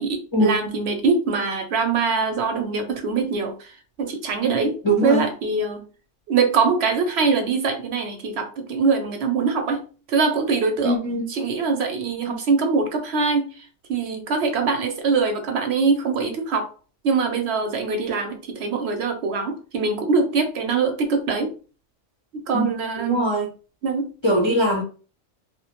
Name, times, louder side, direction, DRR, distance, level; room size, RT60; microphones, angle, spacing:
voice 1, 0.0-3.7 4.0-5.8 6.3-10.9 11.3-13.5 13.9-16.7 17.0-21.5 22.3-23.3 23.8-24.1, right 4 dB, 70° right, 0.8 m, -23 dB
voice 2, 4.8-5.3 10.8-11.3 12.2-12.4 22.5-22.7 23.1-23.5 24.2-24.8, equal, 40° left, 0.4 m, -21 dB
2.4 x 2.1 x 2.8 m
omnidirectional pair, 1.2 m